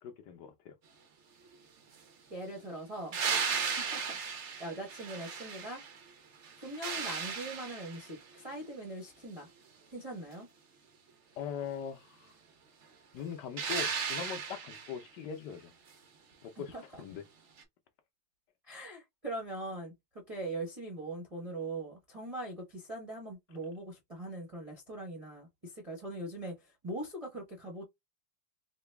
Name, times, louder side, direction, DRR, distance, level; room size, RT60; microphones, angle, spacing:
voice 1, 0.0-0.8 11.4-12.3 13.1-15.7 16.4-17.2, left 7 dB, 70° left, 1.1 m, -41 dB
voice 2, 2.3-3.2 3.6-5.8 6.6-9.5 9.9-10.5 16.7-17.0 18.6-27.8, right 1 dB, 30° right, 0.6 m, -41 dB
sound 1, 3.1-6.0 6.4-8.2 13.6-15.0 17.6-17.7, right 6 dB, 75° right, 0.6 m, -35 dB
3.9 x 2.3 x 3.3 m
omnidirectional pair, 2.4 m